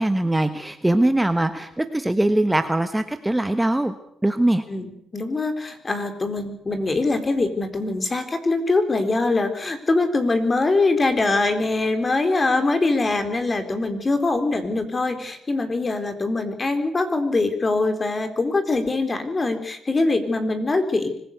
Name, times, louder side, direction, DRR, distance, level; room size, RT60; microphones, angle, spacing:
voice 1, 0.0-3.9 4.2-4.6, right 1 dB, 10° right, 9 dB, 1.3 m, -21 dB
voice 2, 4.7-21.1, left 3 dB, 30° left, 8 dB, 3.9 m, -23 dB
24.5 x 16.0 x 8.2 m, 0.72 s
cardioid pair, 90°, 0 cm